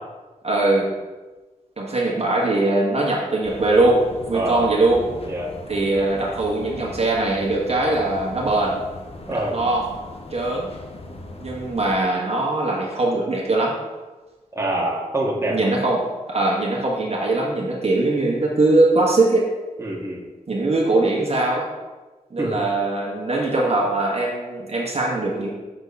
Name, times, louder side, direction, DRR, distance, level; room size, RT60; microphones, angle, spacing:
voice 1, 0.4-0.9 1.8-5.0 5.7-8.8 9.5-9.8 10.3-10.7 11.4-13.8 15.5-19.5 20.5-21.7 22.3-25.5, right 2 dB, 45° right, -4 dB, 1.4 m, -21 dB
sound 1, 3.4-11.9, left 2 dB, 45° left, 0.9 m, -39 dB
voice 2, 4.3-4.7 5.3-5.5 9.3-9.6 14.5-15.7 19.8-20.2 22.4-22.6, right 1 dB, 20° right, -4 dB, 1.6 m, -25 dB
6.9 x 4.0 x 4.1 m, 1.2 s
cardioid pair, 55°, 14 cm